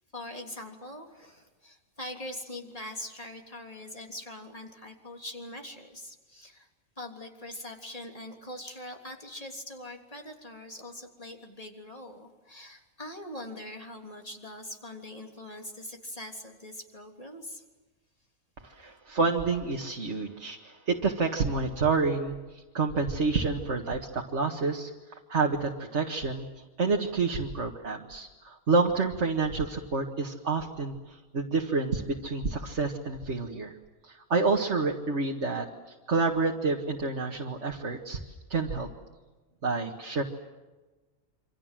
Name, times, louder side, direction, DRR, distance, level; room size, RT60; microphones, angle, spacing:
voice 1, 0.1-6.7 7.0-17.6, left 1 dB, 25° left, 2 dB, 3.4 m, -42 dB
voice 2, 18.6-24.9 25.3-26.5 26.8-33.8 34.0-35.7 36.1-38.2 38.5-38.9 39.6-40.2, right 4 dB, 55° right, 1 dB, 2.1 m, -28 dB
28.0 x 26.0 x 7.6 m, 1.2 s
omnidirectional pair, 1.5 m